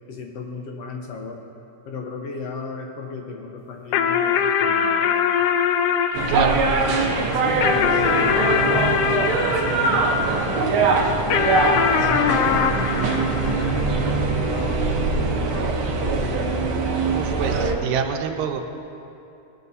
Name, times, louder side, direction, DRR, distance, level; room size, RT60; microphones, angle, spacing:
voice 1, 0.1-1.4 1.9-5.2 6.1-11.1 11.8-16.5, left 4 dB, 70° left, 1 dB, 1.8 m, -35 dB
sound 1, 3.9-10.6 11.3-14.1, left 7 dB, 90° left, 1.3 m, -23 dB
sound 2, 6.1-17.7, right 3 dB, 60° right, 1.5 m, -22 dB
voice 2, 6.3-6.7 17.1-18.6, right 7 dB, 85° right, 5 dB, 2.1 m, -25 dB
19.0 x 12.5 x 2.7 m, 2.8 s
omnidirectional pair, 3.4 m